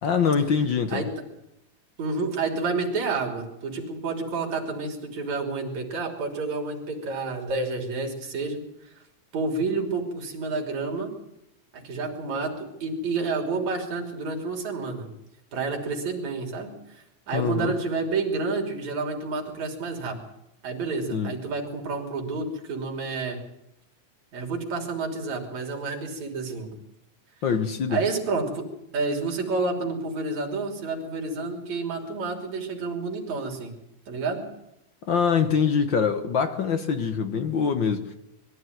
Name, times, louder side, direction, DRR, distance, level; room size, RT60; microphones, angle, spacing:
voice 1, 0.0-1.0 17.3-17.7 21.1-21.3 27.4-28.0 35.1-38.1, left 6 dB, 60° left, 1.3 m, -24 dB
voice 2, 2.0-8.6 9.3-11.1 11.7-15.1 15.5-20.2 20.6-23.4 24.3-26.7 27.9-28.7 28.9-33.7 34.1-34.4, right 3 dB, 65° right, 4.4 m, -29 dB
22.0 x 13.0 x 9.3 m
omnidirectional pair, 3.5 m